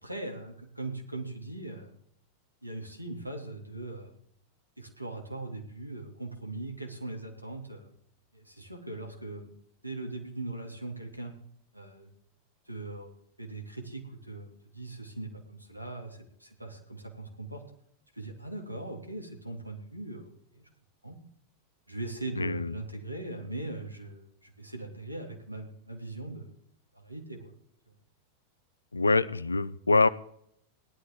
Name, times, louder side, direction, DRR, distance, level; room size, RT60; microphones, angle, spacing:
voice 1, 0.0-1.9 2.6-4.2 4.8-7.9 8.3-9.5 9.8-11.3 11.7-12.1 12.7-17.6 18.1-20.7 21.0-21.2 21.9-26.5 26.9-27.5, right 2 dB, 90° right, 2 dB, 2.5 m, -40 dB
voice 2, 22.4-22.7 28.9-30.1, left 3 dB, 80° left, 17 dB, 0.5 m, -24 dB
18.0 x 11.5 x 3.7 m, 0.69 s
figure-of-eight pair, 90°, 0 cm